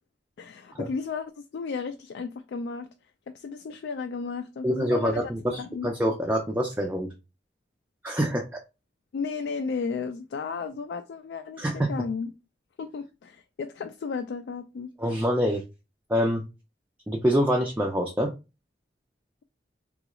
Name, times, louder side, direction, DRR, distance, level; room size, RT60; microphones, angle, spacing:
voice 1, 0.4-2.9 3.3-5.9 9.1-12.3 12.8-14.9, left 5 dB, 75° left, 0.3 m, -34 dB
voice 2, 4.6-7.1 8.0-8.6 11.6-11.9 15.0-15.6 16.1-16.4 17.1-18.3, equal, 10° right, 0.3 m, -25 dB
3.8 x 2.3 x 2.9 m
head